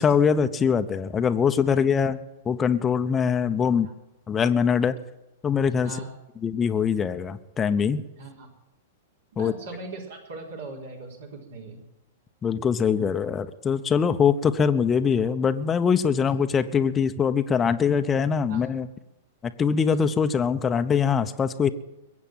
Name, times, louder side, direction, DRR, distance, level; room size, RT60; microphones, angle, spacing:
voice 1, 0.0-3.9 4.3-5.0 5.4-6.0 6.4-8.0 9.4-9.5 12.4-18.9 19.4-21.7, left 6 dB, 20° left, 9 dB, 0.8 m, -23 dB
voice 2, 8.1-8.5 9.3-11.8 18.5-18.6, right 3 dB, 65° right, 0 dB, 4.2 m, -39 dB
21.5 x 8.4 x 7.6 m, 1.0 s
figure-of-eight pair, 105°, 0 cm